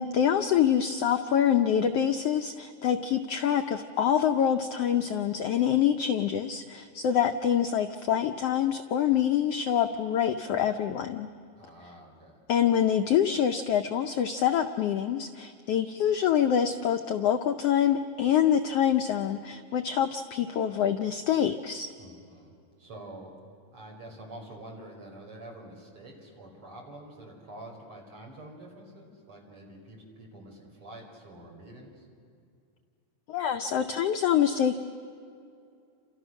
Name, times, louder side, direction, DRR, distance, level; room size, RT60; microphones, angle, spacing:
voice 1, 0.0-11.3 12.5-21.9 33.3-34.8, left 9 dB, 80° left, 6 dB, 1.4 m, -25 dB
voice 2, 11.6-12.4 22.0-23.3 23.7-32.1, right 1 dB, 40° right, 0 dB, 5.9 m, -47 dB
29.5 x 27.5 x 6.4 m, 2.4 s
omnidirectional pair, 3.8 m